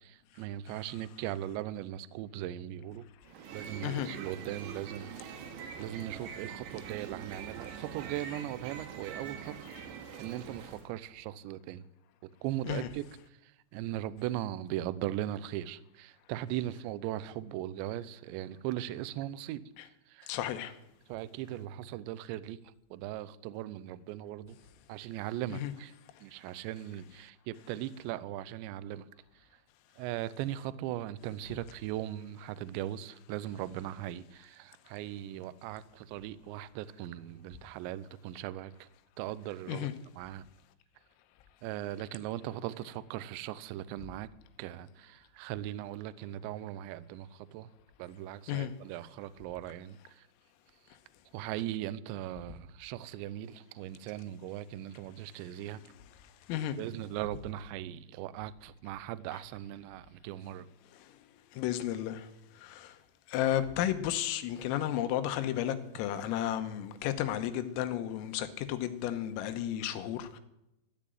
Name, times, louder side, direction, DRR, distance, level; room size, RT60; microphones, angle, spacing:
voice 1, 0.0-3.1 3.5-5.4 5.8-9.5 10.2-11.8 12.2-13.1 13.4-19.6 20.1-20.3 21.1-22.6 22.9-24.6 24.9-25.9 26.2-29.1 30.0-38.9 39.2-39.9 40.1-40.5 41.6-44.3 44.6-47.7 48.0-50.3 51.3-55.8 56.8-60.7, right 13 dB, 85° right, 2.5 m, -39 dB
sound 1, 3.2-10.9, right 7 dB, 70° right, 3.8 m, -44 dB
voice 2, 20.3-20.7 25.5-25.7 39.7-39.9 48.5-48.7 56.5-56.8 61.5-62.3 62.6-63.0 63.3-70.4, left 11 dB, 90° left, 3.6 m, -33 dB
14.0 x 10.5 x 9.1 m
omnidirectional pair, 6.0 m